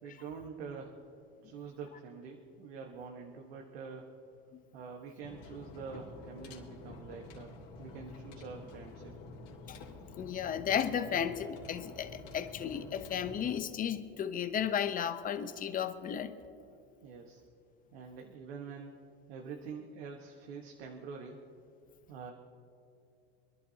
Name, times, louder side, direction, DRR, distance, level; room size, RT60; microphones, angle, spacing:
voice 1, 0.0-1.0 1.4-4.1 4.7-9.1 17.0-17.4 17.9-19.0 19.3-21.4 22.1-22.3, right 5 dB, 85° right, 1 dB, 1.4 m, -46 dB
sound 1, 5.2-13.6, left 3 dB, 55° left, 3.0 m, -49 dB
voice 2, 10.2-16.4, left 8 dB, 25° left, 10 dB, 0.8 m, -34 dB
27.0 x 11.0 x 2.9 m, 2.5 s
supercardioid pair, 125°, 31 cm